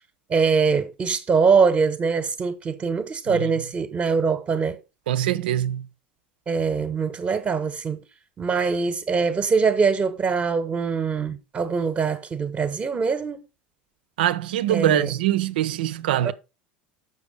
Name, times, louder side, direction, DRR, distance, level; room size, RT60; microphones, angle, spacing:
voice 1, 0.3-4.8 6.5-8.0 8.4-13.4 14.7-15.1 16.2-16.3, right 5 dB, 30° right, 1.0 m, -23 dB
voice 2, 5.1-5.9 14.2-16.3, right 12 dB, 70° right, 0.5 m, -23 dB
6.9 x 6.0 x 4.9 m
hypercardioid pair, 75°, 5 cm